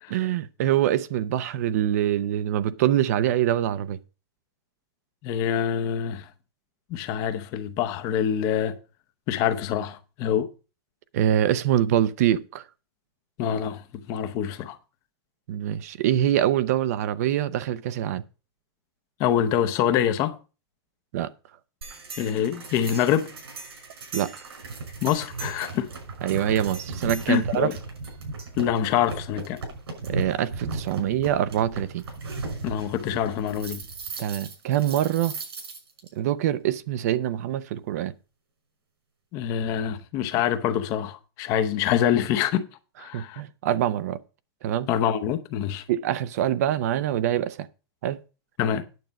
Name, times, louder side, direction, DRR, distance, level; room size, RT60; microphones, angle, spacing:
voice 1, 0.1-4.0 11.1-12.6 15.5-18.2 21.1-21.3 24.1-24.3 26.2-27.7 30.1-32.0 34.2-35.3 36.1-38.1 43.1-44.2 44.6-44.9 45.9-47.7 48.0-48.2, right 11 dB, 40° right, 0.5 m, -24 dB
voice 2, 5.2-6.3 6.9-8.8 9.3-10.5 13.4-14.8 19.2-20.4 22.2-23.3 25.0-25.9 27.3-27.8 28.6-29.6 32.6-33.8 39.3-42.7 43.0-43.4 44.9-45.8 48.6-48.8, left 9 dB, 25° left, 0.7 m, -25 dB
sound 1, 21.8-36.1, right 3 dB, 85° right, 5.9 m, -36 dB
9.3 x 7.5 x 5.2 m
supercardioid pair, 170°, 13 cm